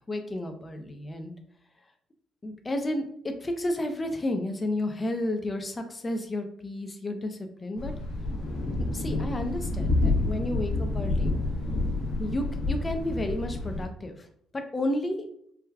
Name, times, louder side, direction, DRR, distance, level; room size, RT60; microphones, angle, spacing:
voice 1, 0.1-1.3 2.4-7.9 8.9-11.3 12.2-14.3 14.5-15.3, left 1 dB, 20° left, 5 dB, 0.4 m, -32 dB
Thunder, 7.8-13.9, left 2 dB, 80° left, 0.8 m, -28 dB
4.5 x 2.3 x 2.3 m, 0.66 s
cardioid pair, 95°, 0 cm